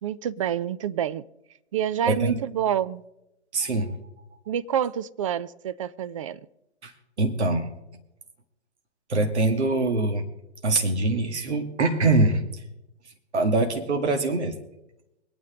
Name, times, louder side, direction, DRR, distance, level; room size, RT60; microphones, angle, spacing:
voice 1, 0.0-1.2 1.7-3.0 4.5-6.4, right 9 dB, 30° right, 0.4 m, -27 dB
voice 2, 2.1-2.4 3.5-4.0 6.8-6.9 7.2-7.7 9.1-10.2 10.6-12.6 13.0-14.6, right 2 dB, 75° right, 2.1 m, -24 dB
24.0 x 9.5 x 3.8 m
figure-of-eight pair, 125°, 34 cm